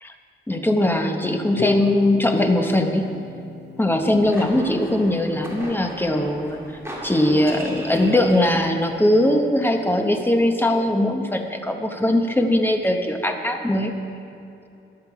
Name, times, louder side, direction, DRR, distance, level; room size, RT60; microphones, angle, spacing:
voice 1, 0.5-3.1 3.8-6.6 7.0-13.9, left 1 dB, 10° left, 4 dB, 0.9 m, -20 dB
Harp, 1.6-7.6, left 4 dB, 55° left, 0.6 m, -32 dB
sound 1, 3.9-9.0, right 1 dB, 15° right, 2.2 m, -38 dB
14.5 x 10.5 x 4.9 m, 2.7 s
wide cardioid pair, 145°, 21 cm